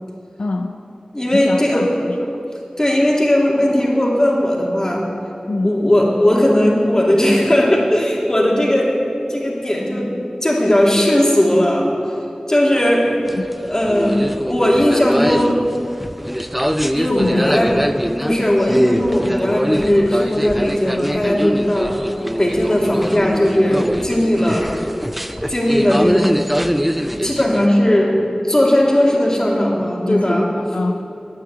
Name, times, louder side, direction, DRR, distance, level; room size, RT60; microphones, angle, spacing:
voice 1, 0.4-0.8 1.3-2.4 5.5-5.7 13.3-13.5 17.1-17.6 30.1-31.1, left 2 dB, 85° left, 5 dB, 0.5 m, -24 dB
voice 2, 1.1-1.9 2.8-5.1 5.6-8.9 9.3-10.1 10.4-11.9 12.5-13.2 13.6-15.6 16.9-17.8 18.2-22.0 22.4-24.7 25.5-26.4 27.0-28.2 28.4-30.5, left 1 dB, 25° left, -3 dB, 2.6 m, -17 dB
sound 1, 13.2-27.7, equal, 5° right, 0.4 m, -23 dB
9.7 x 9.6 x 7.9 m, 2.7 s
wide cardioid pair, 50°, 2 cm